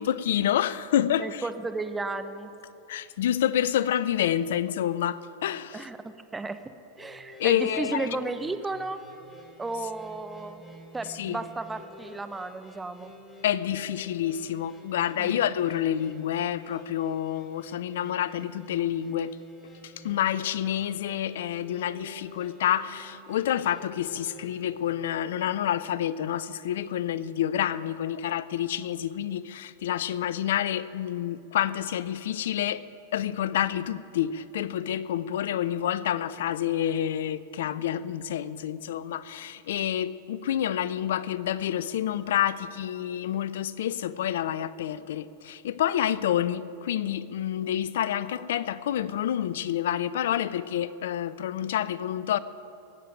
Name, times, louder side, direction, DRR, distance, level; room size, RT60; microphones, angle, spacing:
voice 1, 0.0-1.4 2.9-5.8 7.4-8.2 11.1-11.4 13.4-19.4 19.8-32.8 33.1-52.4, left 10 dB, 70° left, 0.5 m, -28 dB
voice 2, 1.2-2.5 5.7-9.0 9.6-10.6 10.9-13.1 15.2-15.4, right 3 dB, 10° right, 0.9 m, -34 dB
sound 1, 6.9-24.7, equal, 25° left, 3.1 m, -50 dB
17.5 x 7.6 x 9.0 m
hypercardioid pair, 95°, 0 cm